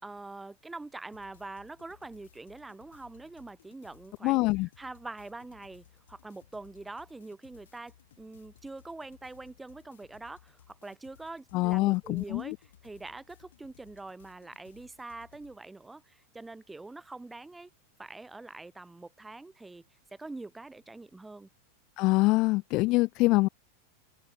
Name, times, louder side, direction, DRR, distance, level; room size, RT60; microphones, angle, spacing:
voice 1, 0.0-4.5 4.8-17.7 18.0-19.8 20.1-21.5, right 2 dB, 10° right, 4.9 m, -44 dB
sound 1, 1.1-15.6, left 10 dB, 60° left, 7.1 m, -61 dB
voice 2, 4.2-4.7 11.5-12.6 22.0-23.5, left 22 dB, 40° left, 0.5 m, -25 dB
open air
figure-of-eight pair, 90°, 0 cm